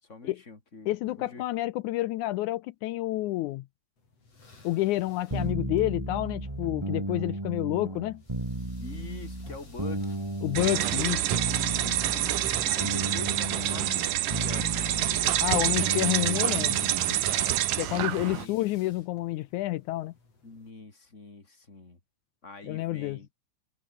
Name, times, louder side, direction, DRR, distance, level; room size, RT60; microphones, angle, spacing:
voice 1, 0.0-0.9 1.2-1.4 8.8-10.2 11.6-12.3 12.6-14.8 15.4-16.2 17.0-17.6 17.9-18.6 20.4-22.0 22.4-23.3, left 3 dB, 20° left, 3.9 m, -44 dB
voice 2, 0.9-3.7 4.6-8.2 10.4-11.2 15.4-16.8 17.8-20.1 22.7-23.2, left 17 dB, 80° left, 2.0 m, -29 dB
sound 1, 4.0-20.7, left 3 dB, 50° left, 7.4 m, -57 dB
sound 2, 5.3-17.2, right 1 dB, 10° right, 2.4 m, -34 dB
sound 3, 10.6-18.5, right 13 dB, 85° right, 2.8 m, -27 dB
omnidirectional pair, 3.7 m